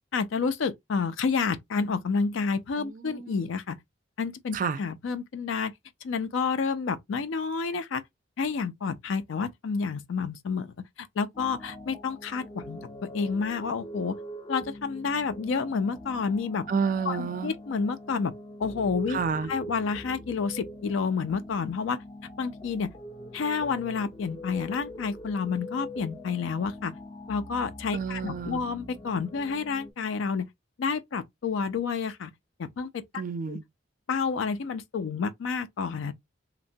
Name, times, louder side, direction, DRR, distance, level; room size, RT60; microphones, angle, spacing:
voice 1, 0.1-3.8 4.2-5.7 6.0-8.0 8.4-14.2 14.5-16.7 17.1-18.3 18.6-19.2 19.5-22.0 22.4-22.9 23.3-26.9 27.3-30.5 30.8-32.3 32.6-33.0 33.5-33.6 34.1-36.1, left 5 dB, 85° left, 0.4 m, -29 dB
voice 2, 2.8-3.5 4.5-4.8 16.7-17.5 19.1-19.5 27.9-28.6 33.1-33.6, right 5 dB, 45° right, 0.3 m, -30 dB
sound 1, 11.3-29.9, equal, 25° left, 0.4 m, -43 dB
2.9 x 2.1 x 2.6 m
head